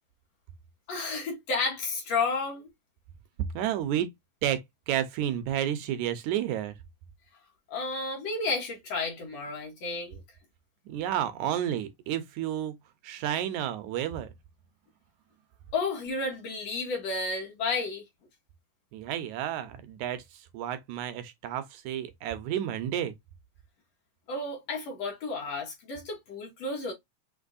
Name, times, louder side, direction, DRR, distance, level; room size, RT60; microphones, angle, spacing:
voice 1, 0.9-2.7 7.7-10.2 15.7-18.0 24.3-26.9, left 3 dB, 60° left, 2.3 m, -32 dB
voice 2, 3.5-4.1 4.4-6.7 10.9-12.7 13.0-14.3 18.9-23.2, right 11 dB, 75° right, 2.0 m, -31 dB
6.0 x 3.0 x 2.5 m
omnidirectional pair, 3.6 m